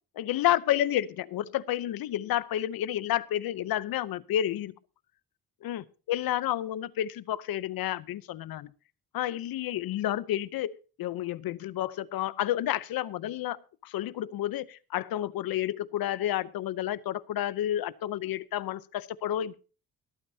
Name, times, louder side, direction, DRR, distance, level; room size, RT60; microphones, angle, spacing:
voice 1, 0.2-4.7 5.6-8.7 9.1-19.5, left 12 dB, 80° left, 19 dB, 0.7 m, -30 dB
24.0 x 8.8 x 2.7 m, 0.35 s
cardioid pair, 125°, 35 cm